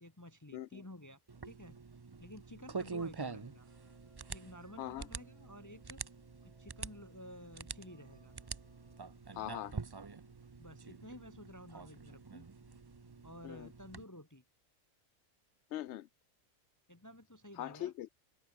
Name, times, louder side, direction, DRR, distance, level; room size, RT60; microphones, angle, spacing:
voice 1, 0.0-1.8 2.2-3.7 4.3-6.0 6.4-8.3 10.6-12.5 13.2-14.4 16.9-17.9, left 1 dB, 15° left, 1.2 m, -52 dB
voice 2, 0.5-0.8 4.8-5.1 9.3-9.7 13.4-13.7 15.7-16.1 17.6-18.1, left 13 dB, 65° left, 0.7 m, -41 dB
sound 1, 1.3-14.0, right 4 dB, 35° right, 0.3 m, -46 dB
sound 2, 3.4-9.1, right 1 dB, 20° right, 3.9 m, -70 dB
sound 3, 7.7-13.9, right 3 dB, 75° right, 3.7 m, -68 dB
open air
omnidirectional pair, 1.5 m